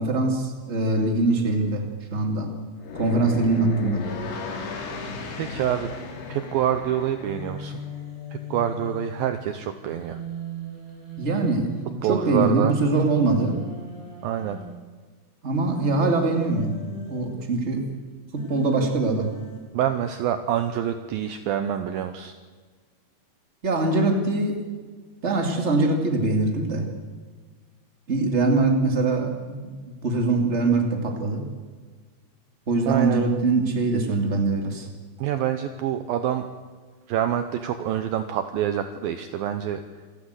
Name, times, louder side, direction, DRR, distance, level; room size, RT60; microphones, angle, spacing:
voice 1, 0.0-1.8 2.1-2.5 2.9-4.0 11.2-13.6 15.4-16.8 17.1-17.8 18.3-19.3 23.6-24.6 25.2-26.9 28.1-29.7 30.0-31.4 32.7-34.9, right 3 dB, 30° right, 3 dB, 1.2 m, -23 dB
sound 1, 2.8-7.9, left 4 dB, 75° left, 5.0 m, -35 dB
Human voice, 4.9-6.4 7.2-9.2 9.9-11.8 12.5-14.6 15.6-17.2 18.4-19.6, right 1 dB, 15° left, 6.8 m, -38 dB
voice 2, 5.4-5.9 6.3-7.8 8.5-10.2 12.0-12.7 14.2-14.6 19.7-22.3 32.9-33.3 35.2-36.5 37.1-39.8, right 10 dB, 85° right, 9 dB, 2.1 m, -26 dB
27.0 x 12.0 x 8.1 m, 1.5 s
omnidirectional pair, 5.3 m